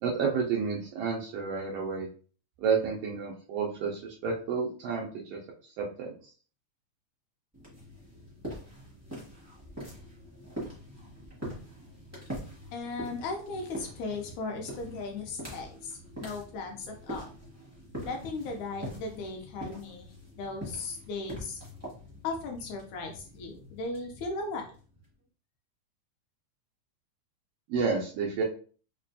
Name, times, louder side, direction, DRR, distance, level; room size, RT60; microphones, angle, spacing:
voice 1, 0.0-2.1 2.6-5.4 5.8-6.1 27.7-28.4, right 5 dB, 90° right, -3 dB, 1.4 m, -30 dB
sound 1, 7.5-25.1, equal, 25° right, 0.3 m, -44 dB
voice 2, 12.7-17.3 18.0-20.1 20.4-21.6 22.2-24.7, left 3 dB, 75° left, 2 dB, 1.9 m, -37 dB
4.9 x 2.2 x 2.6 m, 0.40 s
omnidirectional pair, 3.5 m